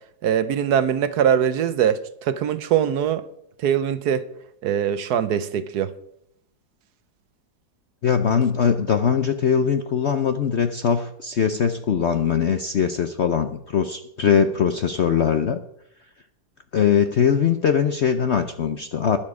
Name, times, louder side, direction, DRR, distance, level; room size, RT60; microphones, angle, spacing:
voice 1, 0.2-3.2 3.6-4.3 4.6-5.9, right 9 dB, 65° right, 1.1 m, -22 dB
voice 2, 8.0-15.6 16.7-19.2, left 7 dB, 60° left, 0.7 m, -21 dB
21.0 x 7.2 x 4.9 m
omnidirectional pair, 2.0 m